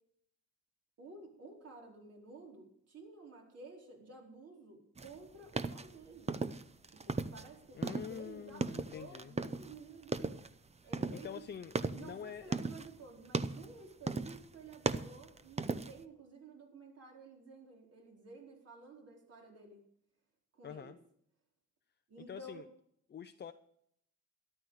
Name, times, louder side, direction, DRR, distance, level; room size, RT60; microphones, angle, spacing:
voice 1, 1.0-6.3 6.9-10.4 10.8-11.4 11.9-19.8 20.5-21.0 22.1-22.6, right 3 dB, 55° right, 0 dB, 4.4 m, -53 dB
sound 1, 5.0-7.5 7.8-9.8 10.0-10.5 10.9-12.9 13.3-13.7 14.1-14.5 14.7-16.0, right 4 dB, 20° right, 0.7 m, -37 dB
voice 2, 7.7-9.3 11.1-12.6 20.6-21.0 22.3-22.7 23.1-23.5, left 8 dB, 35° left, 8 dB, 0.6 m, -46 dB
13.5 x 12.0 x 4.9 m, 0.70 s
cardioid pair, 90°, 30 cm